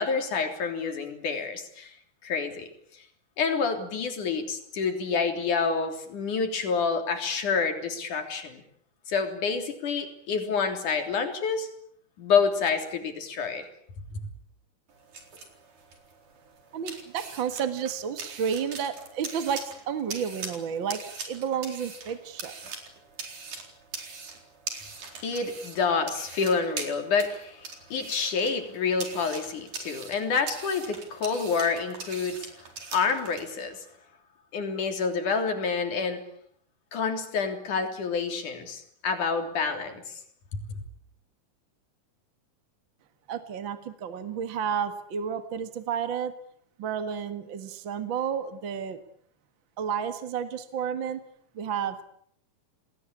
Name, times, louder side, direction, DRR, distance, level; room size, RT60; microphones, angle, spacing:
voice 1, 0.0-1.9 2.2-2.7 3.4-8.6 9.1-11.7 12.2-13.7 25.2-32.5 32.9-33.8 34.5-36.2 36.9-40.0 40.5-40.8, left 5 dB, 85° left, 5 dB, 4.9 m, -28 dB
sound 1, 14.9-33.4, right 4 dB, 80° right, 5.6 m, -42 dB
voice 2, 16.7-22.5 43.3-46.3 46.8-49.0 49.8-51.2 51.5-52.1, right 7 dB, 45° right, 9 dB, 2.2 m, -31 dB
28.5 x 19.5 x 8.5 m, 0.67 s
omnidirectional pair, 3.5 m